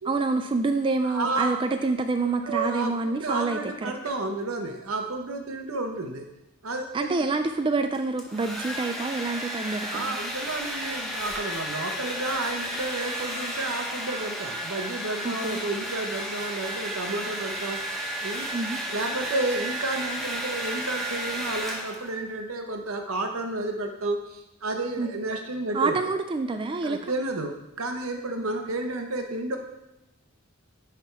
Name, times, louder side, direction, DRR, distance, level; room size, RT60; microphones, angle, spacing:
voice 1, 0.0-3.9 6.9-10.1 15.2-15.6 18.5-18.8 25.0-25.1 25.7-27.0 28.4-28.5, right 3 dB, 25° right, 7 dB, 0.3 m, -27 dB
voice 2, 1.0-1.5 2.2-6.3 6.6-7.2 8.6-8.8 9.9-18.5 18.9-26.0 26.8-29.6, right 2 dB, 85° right, 4 dB, 1.0 m, -31 dB
Domestic sounds home sounds, 7.9-22.2, equal, ahead, 0.8 m, -33 dB
9.8 x 3.6 x 4.6 m, 0.95 s
head